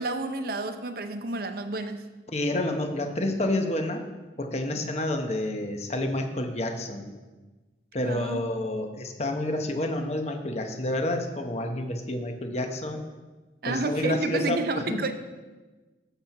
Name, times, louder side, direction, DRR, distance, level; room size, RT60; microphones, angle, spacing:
voice 1, 0.0-2.0 8.0-8.4 13.6-15.1, right 3 dB, 55° right, 8 dB, 0.6 m, -30 dB
voice 2, 2.3-4.0 4.4-7.1 7.9-13.0 13.7-15.0, left 1 dB, 35° left, 5 dB, 0.9 m, -29 dB
12.5 x 4.4 x 5.8 m, 1.2 s
head